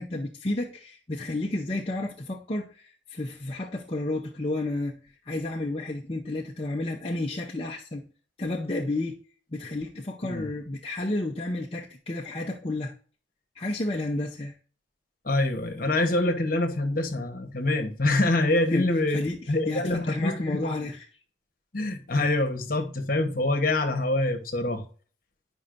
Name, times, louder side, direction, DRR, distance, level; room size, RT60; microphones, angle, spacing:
voice 1, 0.0-5.0 5.2-8.1 8.4-9.2 9.5-12.9 13.5-14.5 18.7-21.1, left 2 dB, 30° left, 0.6 m, -31 dB
voice 2, 15.2-19.2 19.5-20.8 21.7-24.8, left 2 dB, 45° left, 1.1 m, -25 dB
10.0 x 5.4 x 2.6 m
head